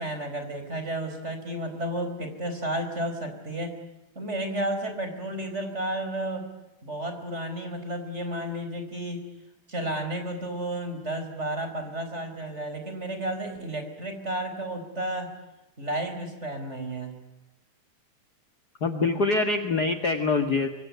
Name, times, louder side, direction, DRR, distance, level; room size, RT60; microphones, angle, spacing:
voice 1, 0.0-3.8 4.1-6.5 6.8-9.2 9.7-15.3 15.8-17.2, right 1 dB, 20° right, 7 dB, 4.6 m, -32 dB
voice 2, 18.8-20.7, left 3 dB, 40° left, 7 dB, 1.7 m, -24 dB
25.5 x 24.5 x 9.5 m, 0.94 s
omnidirectional pair, 3.6 m